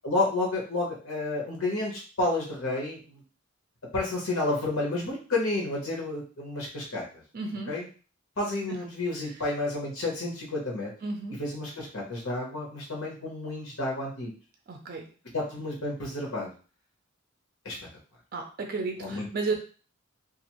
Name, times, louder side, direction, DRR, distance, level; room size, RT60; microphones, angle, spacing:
voice 1, 0.0-3.2 3.9-7.0 7.7-7.9 8.4-10.9 11.4-14.3 15.3-16.5 17.6-17.8 19.0-19.2, left 2 dB, 85° left, -2 dB, 1.0 m, -30 dB
voice 2, 7.3-7.8 8.7-8.8 11.0-11.4 14.7-15.1 18.3-19.5, right 3 dB, 45° right, 3 dB, 0.4 m, -33 dB
2.5 x 2.4 x 2.9 m, 0.37 s
head